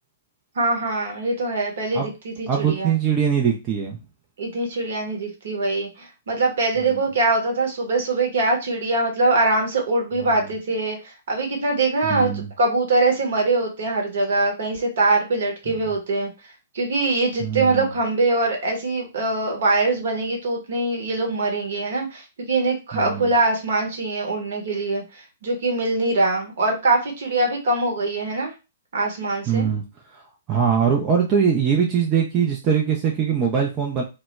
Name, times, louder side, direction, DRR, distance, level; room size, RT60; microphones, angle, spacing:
voice 1, 0.5-2.9 4.4-16.3 16.7-28.5 28.9-29.7, right 2 dB, 55° right, 2 dB, 0.9 m, -23 dB
voice 2, 2.5-4.0 6.8-7.0 12.1-12.5 17.4-17.9 22.9-23.3 29.5-29.8 30.1-30.2 30.5-34.0, right 7 dB, 25° right, 0 dB, 0.4 m, -22 dB
2.1 x 2.0 x 3.2 m, 0.28 s
figure-of-eight pair, 115°, 0 cm